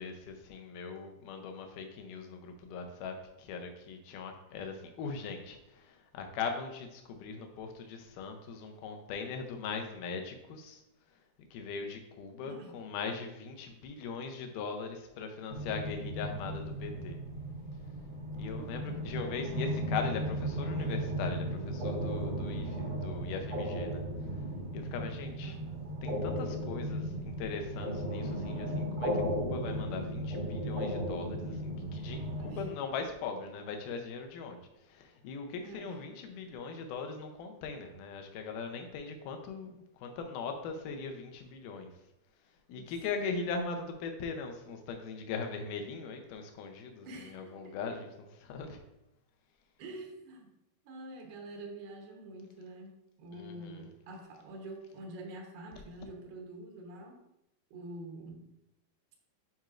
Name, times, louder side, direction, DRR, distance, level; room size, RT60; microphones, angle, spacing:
voice 1, 0.0-10.8 11.5-17.2 18.4-24.0 24.7-25.6 26.0-41.9 42.7-48.8 53.3-53.9, left 5 dB, 75° left, 4 dB, 2.0 m, -40 dB
voice 2, 12.4-12.8 18.4-19.2 20.8-20.9 25.4-25.9 32.3-32.7 35.6-36.0 42.8-43.4 47.0-48.0 49.8-50.5 50.8-57.2 57.7-58.5, right 1 dB, 80° right, 0 dB, 3.0 m, -47 dB
sound 1, 15.5-32.7, equal, 55° right, 1.0 m, -36 dB
10.5 x 4.4 x 2.5 m, 0.86 s
omnidirectional pair, 4.4 m